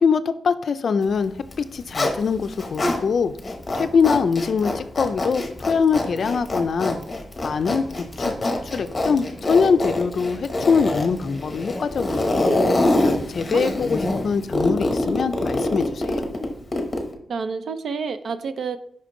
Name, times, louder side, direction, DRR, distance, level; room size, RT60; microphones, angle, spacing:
voice 1, 0.0-3.3 3.7-7.0 7.4-7.8 8.2-12.6 13.3-16.1, left 5 dB, 55° left, 11 dB, 0.4 m, -23 dB
Zipper (clothing), 1.4-3.0 3.4-17.1, left 2 dB, 25° left, 0.9 m, -25 dB
sound 1, 7.5-14.7, equal, 5° left, 2.4 m, -43 dB
voice 2, 17.3-18.8, right 5 dB, 75° right, 11 dB, 0.4 m, -28 dB
5.4 x 5.2 x 3.8 m, 0.66 s
wide cardioid pair, 160°, 0 cm